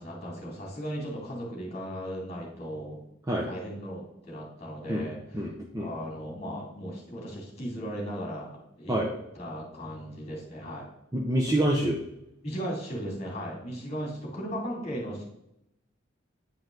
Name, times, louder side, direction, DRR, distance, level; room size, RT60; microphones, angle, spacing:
voice 1, 0.0-3.0 3.4-5.4 5.8-8.9 9.3-10.9 12.4-15.2, equal, 30° left, -3 dB, 2.6 m, -37 dB
voice 2, 5.3-5.9 8.9-9.1 11.1-12.0, right 1 dB, 15° right, -2 dB, 0.7 m, -26 dB
9.2 x 4.7 x 3.8 m, 0.82 s
head